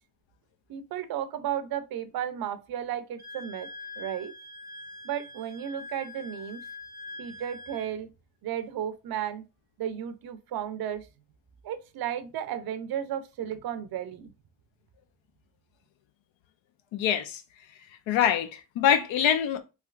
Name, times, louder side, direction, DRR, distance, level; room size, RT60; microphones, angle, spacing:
voice 1, 0.7-3.7 4.0-4.3 5.0-6.6 7.2-8.1 8.4-9.5 9.8-11.1 11.6-14.3, right 10 dB, 55° right, 0.5 m, -34 dB
Wind instrument woodwind instrument, 3.2-7.9, left 2 dB, 20° left, 1.2 m, -44 dB
voice 2, 16.9-17.4 18.1-19.6, left 9 dB, 80° left, 0.6 m, -24 dB
3.2 x 2.9 x 2.3 m
supercardioid pair, 50°, 46 cm